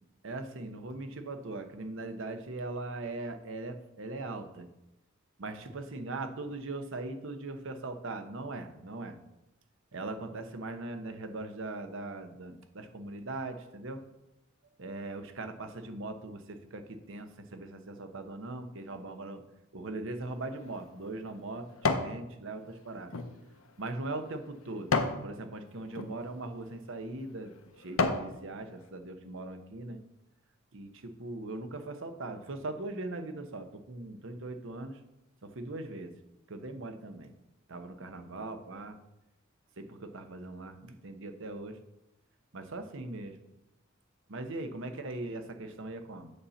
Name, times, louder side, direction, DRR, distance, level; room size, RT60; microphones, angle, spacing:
voice 1, 0.2-4.7 5.4-9.2 9.9-14.0 14.8-19.4 19.7-23.1 23.8-24.9 25.2-27.5 27.8-30.0 30.7-35.0 35.4-36.1 36.5-37.3 37.7-39.0 39.8-41.8 42.5-43.4 44.3-46.3, right 2 dB, 65° right, 8 dB, 0.9 m, -40 dB
sound 1, 20.3-22.2 22.6-25.2 25.8-26.1 26.8-26.9 27.4-28.3 28.8-28.9, left 3 dB, 75° left, 0.8 m, -32 dB
8.5 x 4.2 x 7.0 m, 0.91 s
head